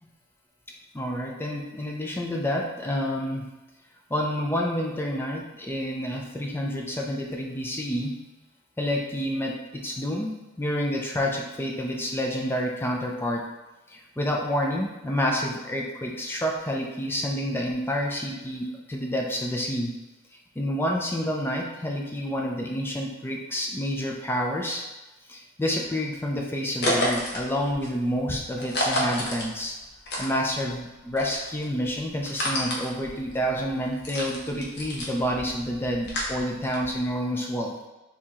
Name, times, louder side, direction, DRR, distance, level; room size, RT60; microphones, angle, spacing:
voice 1, 0.9-3.4 4.1-8.1 8.8-10.3 10.6-13.4 13.9-19.9 20.6-24.8 25.3-29.8 30.2-37.7, equal, 10° left, -1 dB, 0.4 m, -28 dB
sound 1, 26.8-30.8 31.1-37.1, left 1 dB, 55° left, 1.0 m, -31 dB
4.4 x 2.8 x 3.6 m, 1.1 s
head